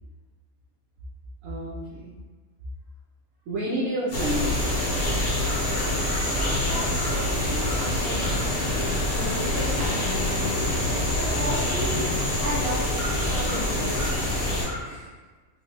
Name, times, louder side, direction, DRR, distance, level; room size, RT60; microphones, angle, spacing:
voice 1, 1.4-2.1 3.5-4.7 14.8-15.0, equal, 85° right, -6 dB, 1.0 m, -30 dB
sound 1, 4.1-14.7, left 1 dB, 45° left, 0.8 m, -26 dB
sound 2, 4.4-15.1, equal, 65° left, 1.1 m, -41 dB
voice 2, 6.2-12.1 12.4-12.8 13.3-14.2, equal, 45° right, -10 dB, 1.8 m, -34 dB
3.2 x 2.7 x 2.7 m, 1.3 s
omnidirectional pair, 1.4 m